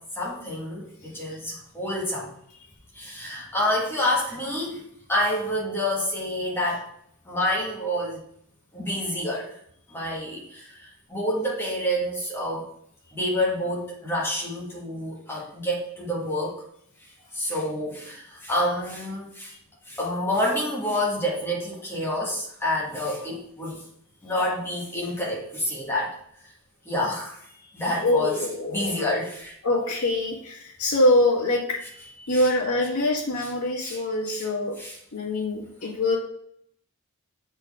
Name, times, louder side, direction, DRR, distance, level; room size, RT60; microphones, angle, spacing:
voice 1, 0.0-2.3 2.9-6.9 7.2-8.2 8.7-9.5 9.9-12.7 13.1-16.6 17.3-19.5 19.9-23.9 24.2-26.1 26.4-26.5 26.8-27.5 27.7-28.4 28.7-29.6 32.3-32.5 33.4-33.5 33.8-34.0 34.3-34.4 34.8-35.0, left 1 dB, 10° left, -5 dB, 1.8 m, -28 dB
voice 2, 28.0-29.1 29.6-34.8 35.1-36.2, left 1 dB, 85° left, -3 dB, 1.8 m, -24 dB
7.5 x 4.4 x 3.7 m, 0.69 s
head